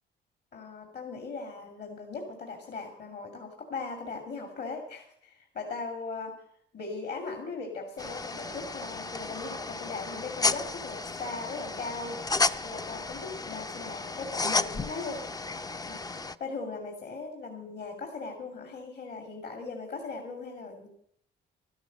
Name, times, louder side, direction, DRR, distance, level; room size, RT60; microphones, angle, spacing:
voice 1, 0.5-6.3 6.7-12.2 12.6-15.4 15.9-16.0 16.4-20.9, left 4 dB, 55° left, 2 dB, 2.6 m, -39 dB
sound 1, 8.0-16.3, left 3 dB, 20° left, 0.5 m, -33 dB
13.0 x 12.5 x 6.3 m, 0.69 s
cardioid pair, 90°, 20 cm